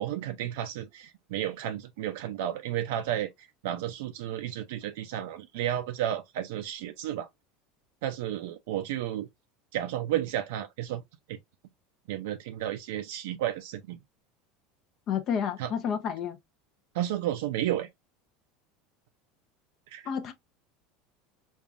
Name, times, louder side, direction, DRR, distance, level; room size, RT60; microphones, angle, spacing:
voice 1, 0.0-7.3 8.0-9.3 9.7-11.0 11.3-11.4 12.1-14.0 15.6-15.7 16.9-17.9 19.9-20.0, right 11 dB, 80° right, 0.5 m, -32 dB
voice 2, 15.1-16.4 20.0-20.3, left 7 dB, 45° left, 0.6 m, -30 dB
5.3 x 2.4 x 2.4 m
supercardioid pair, 135°, 0 cm